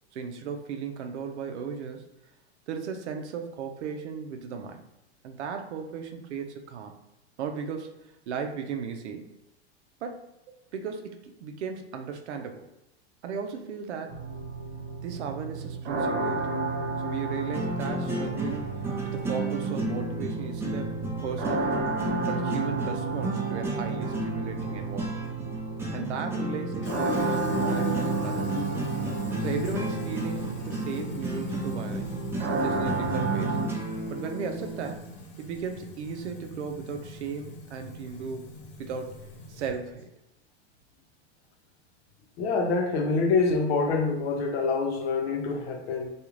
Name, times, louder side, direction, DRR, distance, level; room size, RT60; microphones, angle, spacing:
voice 1, 0.1-2.1 2.7-4.8 5.2-6.9 7.4-7.9 8.3-9.3 10.0-10.3 10.7-12.7 13.2-14.2 15.0-16.6 17.0-20.9 21.2-21.8 22.3-25.1 25.9-28.5 29.4-32.2 32.6-33.6 34.1-35.0 35.4-40.1, right 6 dB, 85° right, 5 dB, 0.6 m, -36 dB
sound 1, 14.1-33.6, right 3 dB, 60° right, 0.9 m, -33 dB
sound 2, 16.2-35.0, right 2 dB, 10° right, 0.4 m, -33 dB
Fill (with liquid), 26.8-39.9, left 4 dB, 35° left, 0.7 m, -40 dB
voice 2, 42.4-46.1, left 4 dB, 65° left, 3 dB, 0.8 m, -26 dB
2.4 x 2.4 x 3.0 m, 0.92 s
hypercardioid pair, 115°, 33 cm